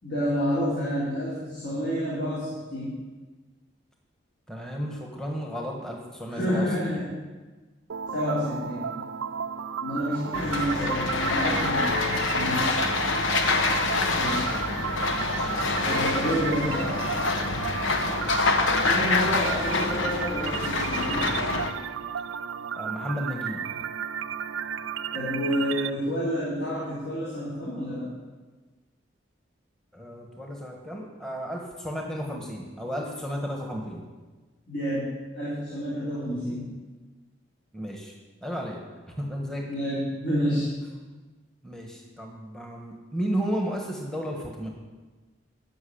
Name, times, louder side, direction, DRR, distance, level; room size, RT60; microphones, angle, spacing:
voice 1, 0.0-3.0 6.3-7.1 8.1-9.0 9.8-12.7 14.2-14.5 15.8-17.0 18.8-21.4 25.1-28.1 34.7-35.1 35.3-36.7 39.7-40.7, equal, 55° left, -10 dB, 3.8 m, -29 dB
voice 2, 4.5-7.0 10.4-11.0 13.9-14.3 18.0-18.3 22.7-23.6 29.9-34.1 37.7-38.1 38.4-38.8 39.2-39.7 41.6-44.7, equal, 5° left, 0 dB, 1.4 m, -33 dB
sound 1, 7.9-25.9, right 7 dB, 90° right, 0.4 m, -33 dB
sound 2, 10.3-21.7, left 3 dB, 85° left, 1.2 m, -26 dB
13.5 x 6.1 x 8.7 m, 1.3 s
head